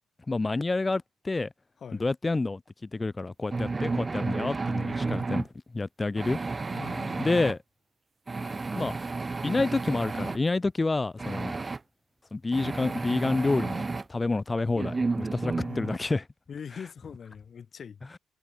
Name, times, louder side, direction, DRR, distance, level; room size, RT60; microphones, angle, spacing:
voice 1, 0.3-1.5 2.0-5.5 5.7-6.4 7.2-7.6 8.7-8.9 9.4-11.6 12.3-16.2, left 3 dB, 20° left, 0.7 m, -28 dB
sound 1, 3.5-5.5 6.2-7.5 8.3-10.4 11.2-11.8 12.5-14.0 14.8-16.0, right 3 dB, 25° right, 0.6 m, -32 dB
voice 2, 6.7-7.4 15.5-15.9 16.5-18.0, left 7 dB, 50° left, 2.4 m, -42 dB
cardioid pair, 90°, 0 cm